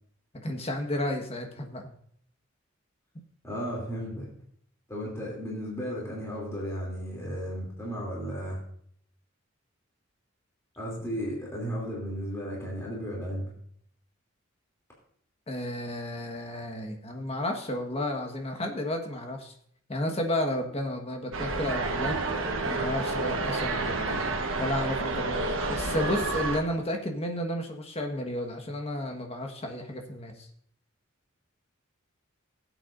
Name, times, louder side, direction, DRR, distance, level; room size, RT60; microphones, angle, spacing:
voice 1, 0.4-1.9 15.5-19.5 19.9-24.2 24.6-30.5, left 1 dB, 30° left, 3 dB, 1.3 m, -32 dB
voice 2, 3.4-4.3 4.9-8.6 10.8-13.5 25.6-25.7, equal, 15° left, -4 dB, 2.8 m, -34 dB
sound 1, 21.3-26.6, right 3 dB, 80° right, 1.2 m, -29 dB
16.5 x 8.3 x 2.6 m, 0.64 s
head